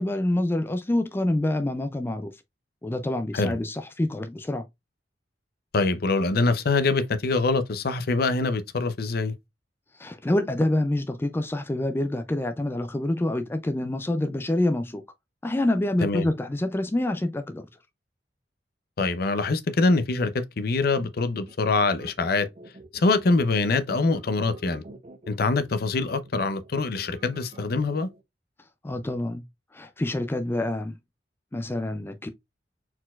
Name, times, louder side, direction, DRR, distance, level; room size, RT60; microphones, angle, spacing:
voice 1, 0.0-2.3 2.8-4.6 9.9-15.0 15.4-17.7 28.8-29.4 29.7-30.9 31.5-32.3, left 1 dB, 15° left, 0.3 m, -27 dB
voice 2, 5.7-9.3 16.0-16.3 19.0-22.5 22.9-24.8 25.3-28.1, left 3 dB, 60° left, 0.6 m, -24 dB
sound 1, 21.5-28.2, right 2 dB, 35° right, 0.7 m, -47 dB
4.4 x 4.0 x 2.3 m
head